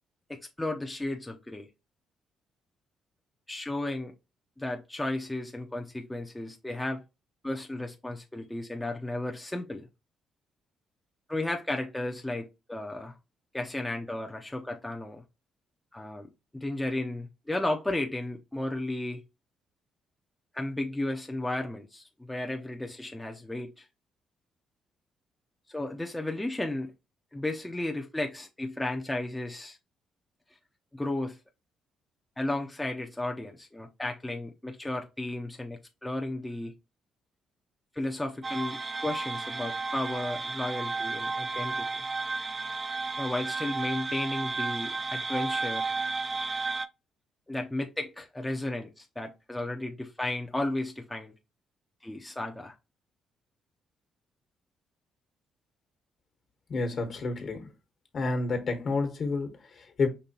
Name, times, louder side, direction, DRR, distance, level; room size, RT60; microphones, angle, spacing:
voice 1, 0.3-1.7 3.5-4.1 4.6-7.0 7.4-9.9 11.3-13.1 13.5-15.2 15.9-16.3 16.5-19.2 20.5-23.9 25.7-26.9 27.3-29.8 30.9-31.4 32.4-36.7 37.9-42.0 43.2-45.9 47.5-51.3 52.0-52.8, left 1 dB, 10° left, 0.6 m, -34 dB
sound 1, 38.4-46.9, right 3 dB, 30° right, 0.4 m, -33 dB
voice 2, 56.7-57.7 58.1-60.1, left 3 dB, 55° left, 1.3 m, -30 dB
5.3 x 2.8 x 2.8 m
cardioid pair, 90°, 0 cm